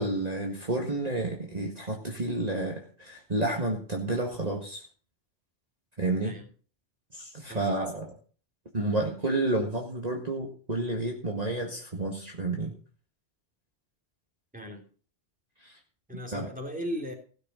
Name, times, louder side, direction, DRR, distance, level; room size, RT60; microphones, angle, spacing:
voice 1, 0.0-4.8 6.0-6.4 7.1-8.1 8.7-12.7 15.6-15.8 16.3-16.5, right 2 dB, 35° right, 0 dB, 2.0 m, -30 dB
voice 2, 14.5-14.8 16.1-17.1, equal, 5° right, 0 dB, 3.2 m, -36 dB
16.5 x 6.6 x 6.3 m, 0.41 s
omnidirectional pair, 1.2 m